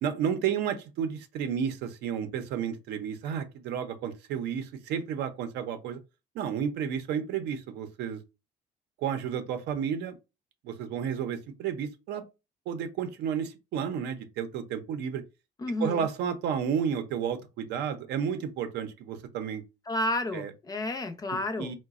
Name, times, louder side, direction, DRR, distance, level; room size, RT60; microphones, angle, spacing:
voice 1, 0.0-6.0 6.3-8.2 9.0-10.2 10.6-12.2 12.7-15.2 15.8-19.6 20.3-20.5 21.3-21.7, right 8 dB, 80° right, 0.6 m, -32 dB
voice 2, 15.6-16.0 19.9-21.7, left 1 dB, 20° left, 0.6 m, -31 dB
4.0 x 2.2 x 2.4 m
cardioid pair, 110°, 17 cm